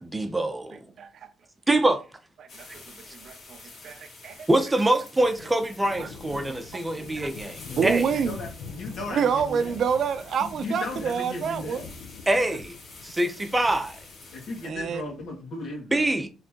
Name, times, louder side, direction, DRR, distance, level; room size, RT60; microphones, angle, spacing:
voice 1, 0.0-0.8 1.7-2.0 4.5-8.0 12.3-12.7 13.0-14.0 15.9-16.3, right 1 dB, 15° right, 0.6 m, -24 dB
voice 2, 2.4-2.8 3.1-4.5 6.0-6.6 7.0-7.3 7.8-8.3 9.1-11.8 14.6-15.0, right 7 dB, 60° right, 0.5 m, -28 dB
sound 1, 2.5-14.7, left 3 dB, 55° left, 2.3 m, -48 dB
sound 2, 5.2-15.4, left 5 dB, 85° left, 0.7 m, -45 dB
voice 3, 7.7-9.7 10.6-11.9 14.3-16.1, left 2 dB, 70° left, 2.0 m, -36 dB
4.3 x 3.3 x 2.9 m
cardioid pair, 90°, 0 cm